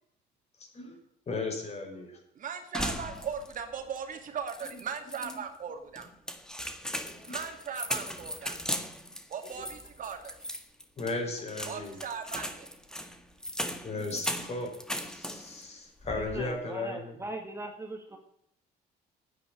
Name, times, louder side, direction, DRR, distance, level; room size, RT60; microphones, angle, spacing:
voice 1, 1.3-2.2 5.2-5.4 7.1-7.4 9.4-9.5 11.0-12.0 13.8-17.2, left 3 dB, 40° left, 2 dB, 5.6 m, -36 dB
voice 2, 2.4-6.1 7.3-8.6 9.3-10.3 11.7-12.7, right 7 dB, 50° right, 6 dB, 2.3 m, -38 dB
sound 1, 2.7-3.7 4.0-4.1 4.5-5.4 6.0-15.6 16.0-16.5, equal, 5° left, 1.7 m, -38 dB
voice 3, 16.2-18.2, right 2 dB, 15° right, 4 dB, 1.8 m, -39 dB
9.7 x 9.7 x 8.7 m, 0.75 s
cardioid pair, 110°, 17 cm